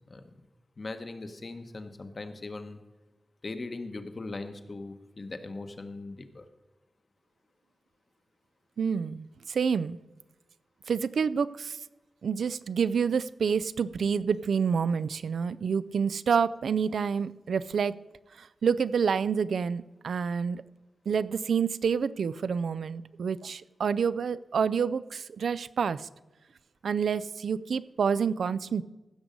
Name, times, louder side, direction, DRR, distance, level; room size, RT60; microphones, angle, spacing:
voice 1, 0.8-2.8 3.4-6.4, left 3 dB, 45° left, 8 dB, 1.1 m, -40 dB
voice 2, 8.8-10.0 10.9-11.8 12.2-17.9 18.4-20.6 21.1-26.1 26.8-28.8, right 6 dB, 90° right, 16 dB, 0.3 m, -28 dB
15.5 x 6.3 x 5.2 m, 1.1 s
wide cardioid pair, 85°, 0 cm